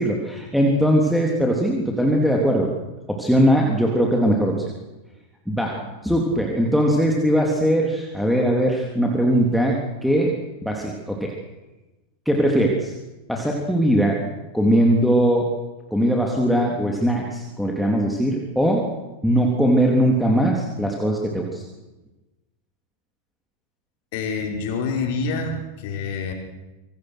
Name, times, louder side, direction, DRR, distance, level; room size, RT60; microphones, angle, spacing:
voice 1, 0.0-2.7 3.1-4.7 5.5-10.4 10.6-11.3 12.3-12.9 13.3-14.2 14.5-15.5 15.9-18.8 19.2-21.6, equal, ahead, -1 dB, 3.6 m, -20 dB
voice 2, 24.1-26.3, left 4 dB, 50° left, 2 dB, 5.9 m, -27 dB
26.5 x 24.5 x 6.5 m, 1.1 s
figure-of-eight pair, 90°, 0 cm